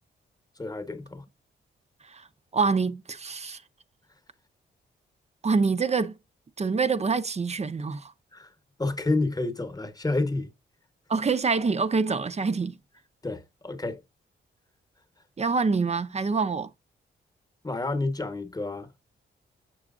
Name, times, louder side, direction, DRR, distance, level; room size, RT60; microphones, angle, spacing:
voice 1, 0.6-1.2 8.3-8.5 8.8-10.5 13.2-14.0 17.6-18.9, left 2 dB, 20° left, 1.1 m, -29 dB
voice 2, 2.5-3.6 5.4-6.2 6.6-8.1 11.1-12.7 15.4-16.7, right 4 dB, 35° right, 0.6 m, -26 dB
6.9 x 6.1 x 2.4 m
cardioid pair, 60°, 20 cm